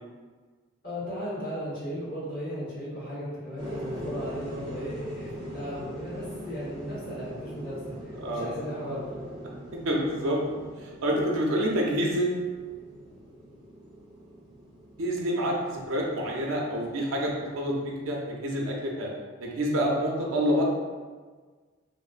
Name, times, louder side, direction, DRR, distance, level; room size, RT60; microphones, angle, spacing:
voice 1, 0.8-9.2, equal, 45° left, -9 dB, 1.2 m, -36 dB
sound 1, 3.6-18.1, equal, 20° right, 0.5 m, -42 dB
voice 2, 9.9-10.4 10.8-12.5 15.0-19.1 19.4-20.6, equal, 75° right, -2 dB, 0.5 m, -27 dB
2.9 x 2.0 x 2.4 m, 1.4 s
head